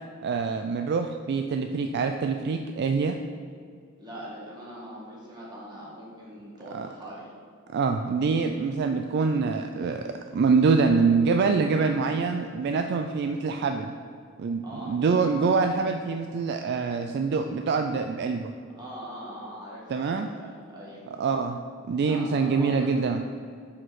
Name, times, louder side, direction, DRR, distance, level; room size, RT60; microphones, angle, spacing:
voice 1, 0.2-3.2 6.7-6.9 7.7-13.9 14.4-18.5 19.9-20.3 21.2-21.6 21.9-23.2, right 4 dB, 50° right, 6 dB, 0.3 m, -25 dB
voice 2, 4.0-7.3 14.6-15.0 18.8-21.0 22.1-22.9, equal, 20° right, -6 dB, 1.9 m, -42 dB
5.9 x 4.9 x 6.4 m, 2.2 s
head